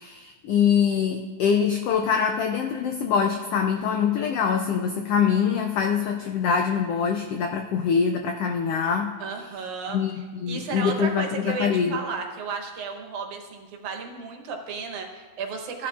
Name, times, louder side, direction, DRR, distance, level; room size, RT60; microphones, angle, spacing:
voice 1, 0.0-9.2 9.9-12.0, left 7 dB, 90° left, 4 dB, 1.3 m, -24 dB
voice 2, 9.2-10.0 10.5-15.9, right 5 dB, 80° right, 2 dB, 2.5 m, -33 dB
15.5 x 11.0 x 2.4 m, 1.4 s
omnidirectional pair, 3.4 m